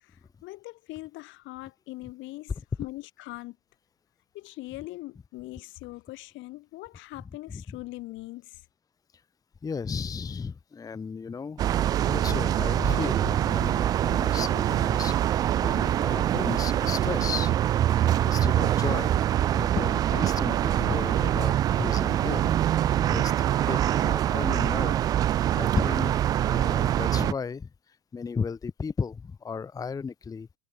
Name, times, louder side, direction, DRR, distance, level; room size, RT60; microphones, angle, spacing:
voice 1, 0.0-3.6 4.3-8.7, left 19 dB, 30° left, 1.7 m, -41 dB
voice 2, 9.6-17.6 18.2-22.5 23.0-25.0 25.5-30.6, left 5 dB, 10° left, 1.4 m, -34 dB
sound 1, 11.6-27.3, right 11 dB, 10° right, 0.3 m, -24 dB
supercardioid pair, 160°, 36 cm